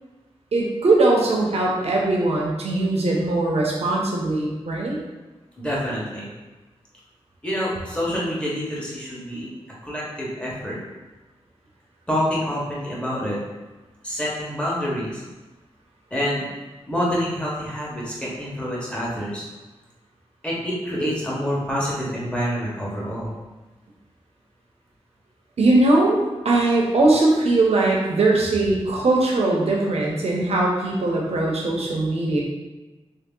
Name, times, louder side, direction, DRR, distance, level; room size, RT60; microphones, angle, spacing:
voice 1, 0.5-5.0 25.6-26.2 26.4-32.4, right 2 dB, 75° right, -2 dB, 0.8 m, -20 dB
voice 2, 5.6-6.3 7.4-9.5 9.8-10.8 12.1-13.4 14.0-15.2 16.1-16.5 16.9-19.4 20.4-23.3, equal, 10° left, -6 dB, 1.2 m, -27 dB
3.2 x 2.8 x 3.6 m, 1.2 s
wide cardioid pair, 95°, 11 cm